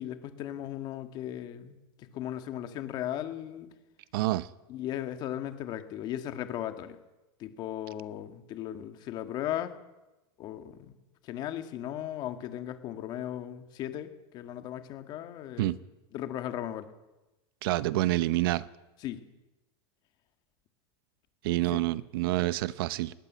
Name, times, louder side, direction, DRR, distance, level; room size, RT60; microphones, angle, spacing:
voice 1, 0.0-3.7 4.7-7.0 7.4-9.7 10.4-10.8 11.2-15.8 16.1-16.9 19.0-19.2 21.7-21.8, left 11 dB, 30° left, 1.8 m, -37 dB
voice 2, 4.1-4.5 15.6-15.8 17.6-18.6 21.4-23.1, right 17 dB, 60° right, 0.9 m, -27 dB
20.5 x 18.0 x 9.3 m
supercardioid pair, 165°, 13 cm